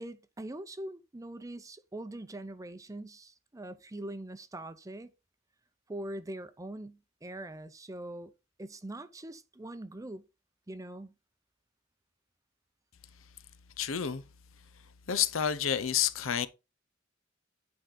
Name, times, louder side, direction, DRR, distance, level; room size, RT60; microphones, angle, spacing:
voice 1, 0.0-5.1 5.9-8.3 8.6-10.2 10.7-11.1, right 1 dB, 15° right, 0.6 m, -42 dB
voice 2, 13.8-14.2 15.1-16.5, left 9 dB, 80° left, 0.7 m, -29 dB
9.1 x 4.7 x 3.8 m
head